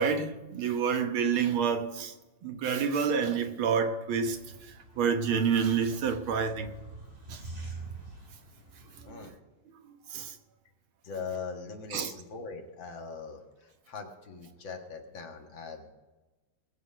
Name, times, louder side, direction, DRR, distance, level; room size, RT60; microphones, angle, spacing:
voice 1, 0.0-2.1 2.4-6.7 7.3-7.4 9.1-9.2 9.9-10.4 11.9-12.1, right 6 dB, 85° right, 2.0 m, -29 dB
sound 1, 4.1-9.2, right 3 dB, 30° right, 3.7 m, -46 dB
voice 2, 9.0-9.4 11.0-15.9, left 5 dB, 70° left, 2.4 m, -41 dB
20.0 x 8.0 x 5.2 m
omnidirectional pair, 2.2 m